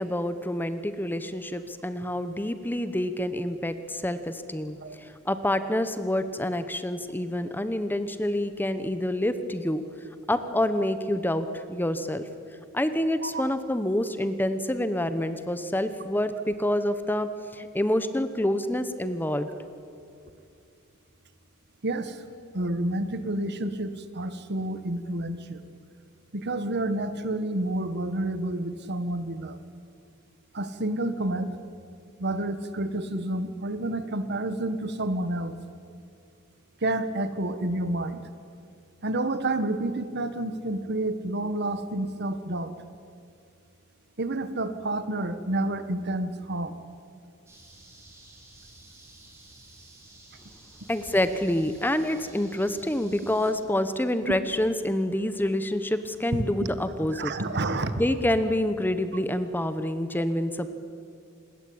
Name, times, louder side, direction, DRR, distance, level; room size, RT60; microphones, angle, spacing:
voice 1, 0.0-9.8 10.3-12.3 12.7-19.5 50.9-57.3 58.0-60.7, left 1 dB, 10° left, 11 dB, 1.0 m, -27 dB
voice 2, 21.8-22.2 22.5-25.6 26.3-29.6 30.5-31.5 32.2-35.6 36.8-38.2 39.0-42.7 44.2-46.7 54.3-54.4 56.3-56.4 57.1-57.9, right 1 dB, 55° right, 11 dB, 1.5 m, -29 dB
sound 1, 47.5-53.5, right 1 dB, 15° right, 4.9 m, -51 dB
27.0 x 21.0 x 8.8 m, 2.4 s
head